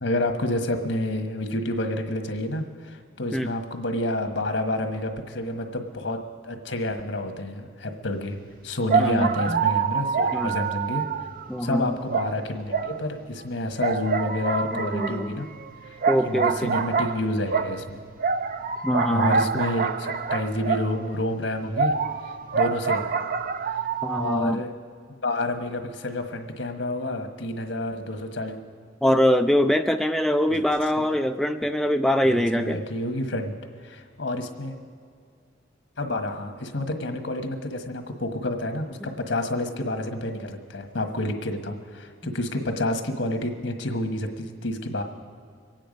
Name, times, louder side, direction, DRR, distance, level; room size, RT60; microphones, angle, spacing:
voice 1, 0.0-8.4 8.6-11.0 11.6-15.5 16.2-18.0 19.0-21.9 22.2-23.1 24.1-24.7 25.1-28.5 30.5-30.6 32.2-33.6 33.8-34.7 36.0-45.0, left 1 dB, 75° left, 6 dB, 1.4 m, -29 dB
sound 1, 8.3-8.4 8.9-11.7 12.1-13.4 13.8-21.2 21.7-24.4, right 5 dB, 50° right, 0.6 m, -26 dB
voice 2, 9.0-9.6 10.3-10.5 11.5-11.9 14.7-15.3 16.1-16.7 18.8-19.5 24.0-24.6 29.0-32.8 42.2-42.3, equal, ahead, 6 dB, 0.3 m, -23 dB
23.5 x 9.1 x 5.2 m, 2.1 s
head